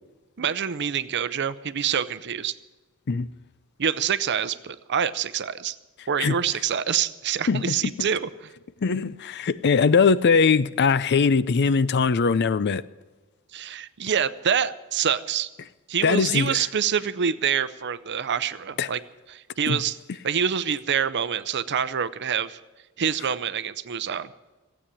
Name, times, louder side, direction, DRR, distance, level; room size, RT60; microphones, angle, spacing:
voice 1, 0.4-2.5 3.8-5.8 6.1-8.3 13.5-15.5 15.9-19.0 19.3-20.0 20.2-22.6 23.0-24.3, right 8 dB, 55° right, 0.6 m, -26 dB
voice 2, 7.5-8.1 8.8-12.8 16.0-16.6 18.8-18.9 19.7-19.8, left 5 dB, 50° left, 0.5 m, -21 dB
15.5 x 8.6 x 9.9 m
head